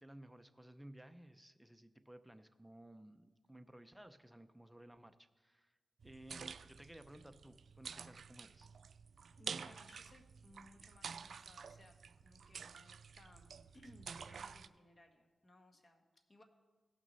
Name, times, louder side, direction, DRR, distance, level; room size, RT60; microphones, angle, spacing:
voice 1, 0.0-5.8 6.0-8.7, right 1 dB, 5° right, 9 dB, 0.6 m, -57 dB
sound 1, 6.0-14.7, right 6 dB, 70° right, 0.3 m, -50 dB
voice 2, 9.4-12.0 12.2-13.5 13.7-16.4, left 1 dB, 35° left, 4 dB, 1.4 m, -63 dB
17.0 x 6.1 x 4.1 m, 1.4 s
cardioid pair, 75°, 0 cm